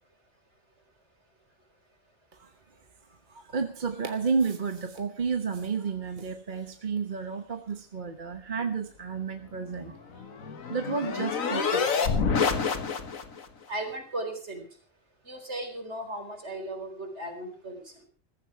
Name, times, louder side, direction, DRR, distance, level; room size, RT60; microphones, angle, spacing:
voice 1, 3.3-10.0 10.7-12.0, right 5 dB, 40° right, 7 dB, 1.2 m, -31 dB
sound 1, 9.8-13.4, left 5 dB, 90° left, 1.8 m, -28 dB
voice 2, 13.7-14.6 15.3-17.8, right 1 dB, 55° right, 4 dB, 4.4 m, -36 dB
15.0 x 14.5 x 4.5 m, 0.40 s
omnidirectional pair, 1.4 m